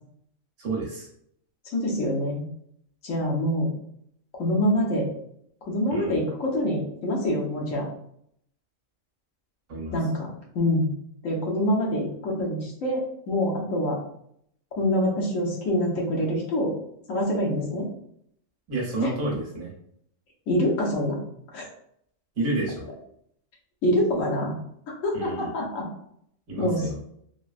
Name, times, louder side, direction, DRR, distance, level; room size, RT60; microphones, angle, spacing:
voice 1, 0.6-1.1 5.9-6.2 9.7-10.0 18.7-19.7 22.4-22.9 25.1-25.5 26.5-27.0, right 2 dB, 65° right, -3 dB, 1.2 m, -30 dB
voice 2, 1.7-2.5 3.0-3.7 4.3-5.1 5.6-7.9 9.9-10.3 10.5-10.9 11.2-14.0 14.7-16.7 17.1-17.9 19.0-19.1 20.5-21.2 21.5-21.6 23.8-24.5 24.9-25.9 26.6-26.9, left 1 dB, 70° left, -3 dB, 1.2 m, -25 dB
3.6 x 2.0 x 2.4 m, 0.69 s
omnidirectional pair, 1.4 m